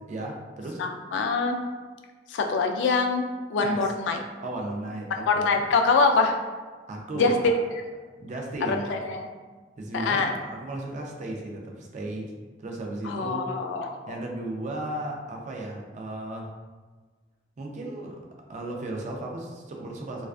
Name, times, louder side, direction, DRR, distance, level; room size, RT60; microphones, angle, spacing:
voice 1, 0.1-0.8 3.6-3.9 4.4-5.6 6.9-7.5 8.2-8.9 9.8-12.3 12.6-13.5 14.1-16.5 17.6-18.2 18.5-20.3, right 1 dB, 40° right, 0 dB, 0.4 m, -35 dB
voice 2, 0.8-1.6 2.3-4.2 5.3-6.3 7.1-7.3 8.7-9.2 9.9-10.3 13.0-14.1, left 4 dB, 80° left, 3 dB, 0.3 m, -24 dB
2.4 x 2.2 x 2.3 m, 1.4 s
head